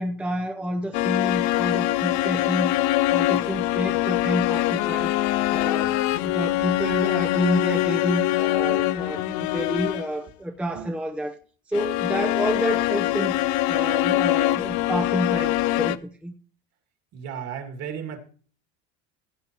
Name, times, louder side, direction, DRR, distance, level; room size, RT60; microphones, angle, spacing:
voice 1, 0.0-2.8 3.1-5.2 5.5-11.4 11.7-13.3 13.7-16.3, equal, 5° right, 0.7 m, -29 dB
sound 1, 0.9-10.2 11.7-16.0, left 16 dB, 65° left, 0.6 m, -23 dB
voice 2, 17.1-18.2, right 8 dB, 50° right, 2.4 m, -34 dB
16.0 x 8.7 x 3.0 m
supercardioid pair, 120°, 32 cm